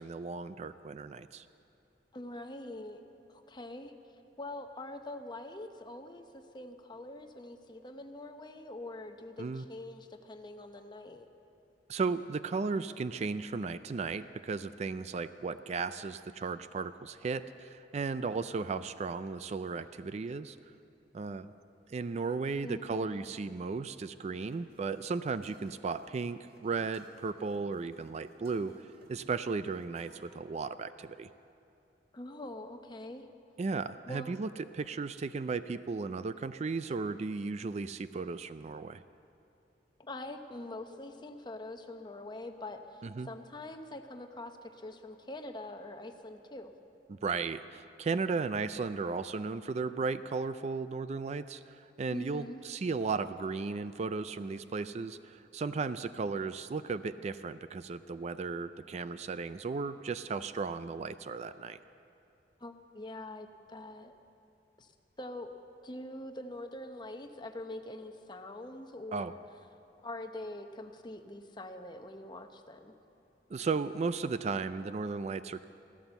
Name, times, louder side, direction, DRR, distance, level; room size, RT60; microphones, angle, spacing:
voice 1, 0.0-1.4 9.4-9.6 11.9-20.6 21.1-21.5 21.9-31.3 33.6-39.0 43.0-43.3 47.1-61.8 69.1-69.3 73.5-75.6, right 4 dB, 40° right, 13 dB, 0.3 m, -35 dB
voice 2, 2.1-3.0 3.3-3.9 4.4-11.3 22.6-23.2 32.1-33.3 34.0-34.4 40.0-46.7 52.1-52.6 62.6-64.1 64.8-64.9 65.2-65.5 65.8-69.4 70.0-72.9, left 1 dB, 25° left, 6 dB, 0.9 m, -44 dB
sound 1, 24.3-30.3, right 1 dB, 65° right, 1.9 m, -60 dB
15.0 x 13.0 x 7.0 m, 2.7 s
head